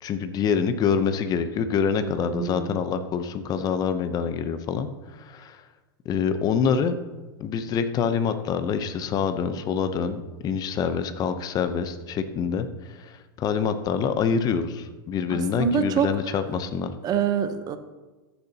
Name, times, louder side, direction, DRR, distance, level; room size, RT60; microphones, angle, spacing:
voice 1, 0.0-4.9 5.2-5.6 6.0-6.9 7.4-16.9, left 6 dB, 30° left, 10 dB, 0.7 m, -26 dB
voice 2, 2.0-2.8 15.3-16.1 17.0-17.8, right 7 dB, 30° right, 10 dB, 0.8 m, -26 dB
14.0 x 7.0 x 2.9 m, 1.2 s
hypercardioid pair, 115°, 12 cm